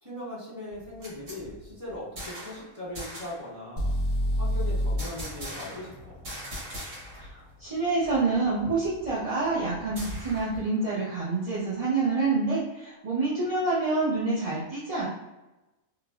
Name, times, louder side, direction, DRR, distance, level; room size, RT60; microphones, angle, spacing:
voice 1, 0.0-3.9 4.4-6.2, left 1 dB, 15° right, -10 dB, 1.4 m, -39 dB
sound 1, 0.7-2.7 2.9-3.4 5.0-5.9 6.2-7.3 7.6-7.7 8.0-10.6, equal, 70° right, 1.6 m, -40 dB
sound 2, 3.8-7.7, equal, 35° left, 0.6 m, -30 dB
voice 2, 7.2-15.1, right 3 dB, 40° right, -9 dB, 0.6 m, -27 dB
3.2 x 2.4 x 2.3 m, 1.0 s
omnidirectional pair, 1.4 m